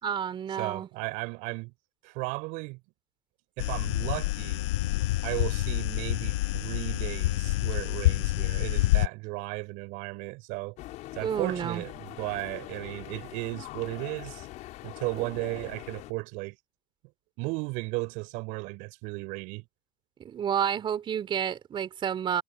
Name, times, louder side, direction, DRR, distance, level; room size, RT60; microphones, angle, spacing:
voice 1, 0.0-0.9 11.2-11.8 15.1-15.3 20.2-22.4, right 8 dB, 30° right, 4.0 m, -30 dB
voice 2, 0.6-1.7 2.0-2.8 3.6-4.6 5.2-10.8 11.1-14.5 14.8-16.6 17.4-19.6, right 27 dB, 55° right, 4.5 m, -35 dB
sound 1, 3.6-9.1, left 17 dB, 65° left, 1.2 m, -27 dB
sound 2, 10.8-16.1, left 17 dB, 50° left, 6.8 m, -43 dB
hypercardioid pair, 95°, 16 cm